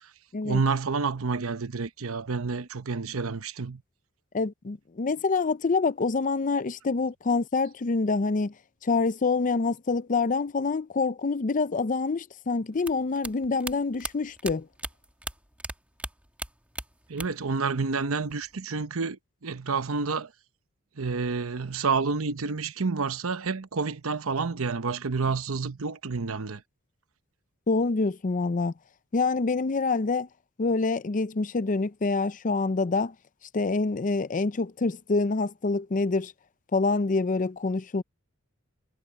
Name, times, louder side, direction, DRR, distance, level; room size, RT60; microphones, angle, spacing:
voice 1, 0.4-3.8 17.1-20.3 21.0-26.6, right 4 dB, 75° right, 0.9 m, -29 dB
voice 2, 4.3-8.5 8.8-14.7 27.7-28.7 29.1-30.3 30.6-33.1 33.5-36.3 36.7-38.0, left 3 dB, 40° left, 0.5 m, -26 dB
sound 1, 12.8-15.7 16.0-17.5 17.8-18.5, right 1 dB, 5° right, 1.6 m, -37 dB
head